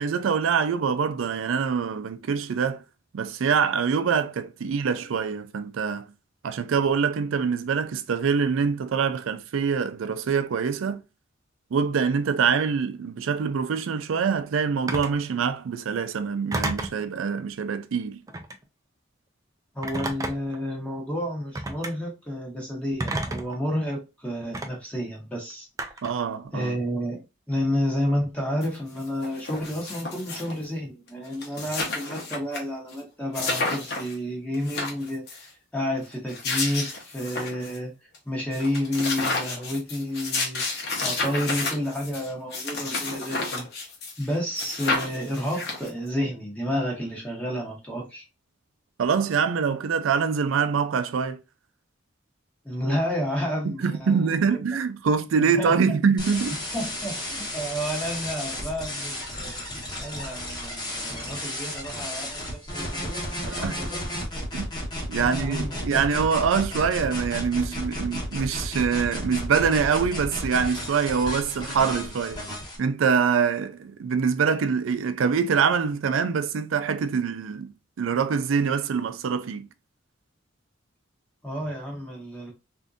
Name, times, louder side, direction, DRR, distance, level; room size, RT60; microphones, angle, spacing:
voice 1, 0.0-2.8 3.1-6.1 6.4-11.0 11.7-18.2 26.0-26.8 49.0-51.4 53.6-56.6 63.4-63.8 64.5-64.7 65.1-72.4 72.8-79.7, right 6 dB, 80° right, 0.4 m, -25 dB
Telephone, 14.9-15.2 16.5-17.0 18.3-18.6 19.8-20.6 21.5-21.9 23.0-23.6 24.5-24.7 25.8-26.2, right 2 dB, 15° right, 0.4 m, -30 dB
voice 2, 19.7-25.7 26.5-27.2 27.5-37.9 38.2-40.6 41.0-43.7 44.2-48.2 52.6-54.8 55.4-55.7 56.7-59.6 60.0-64.0 65.2-66.0 81.4-82.5, equal, 5° left, 1.0 m, -30 dB
sound 1, 28.6-28.7 29.0-30.6 31.1-31.2 31.3-32.6 32.9-33.0 33.3-34.1 34.5-35.4 36.1-37.8 38.1-38.2 38.5-44.3 44.6-46.1, left 3 dB, 55° left, 0.9 m, -31 dB
sound 2, 56.2-72.8, left 1 dB, 20° left, 1.1 m, -33 dB
3.5 x 2.6 x 2.4 m
head